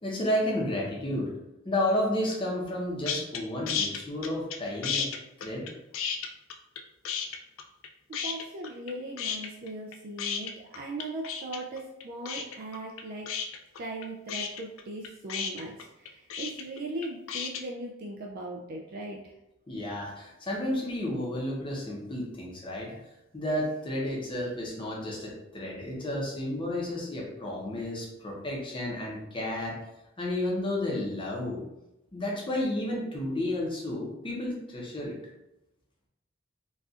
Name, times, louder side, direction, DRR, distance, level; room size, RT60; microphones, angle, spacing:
voice 1, 0.0-1.3 1.6-5.1 5.4-5.7 19.7-23.0 23.3-29.8 30.2-31.6 32.1-35.2, left 1 dB, 25° left, -3 dB, 0.7 m, -31 dB
sound 1, 3.0-3.4 3.7-4.6 4.8-6.8 7.0-7.9 8.1-8.9 9.2-17.6, left 6 dB, 65° left, 0.3 m, -33 dB
voice 2, 8.1-13.3 13.8-19.3, right 2 dB, 45° right, 0 dB, 0.3 m, -39 dB
4.0 x 2.4 x 2.4 m, 0.90 s
head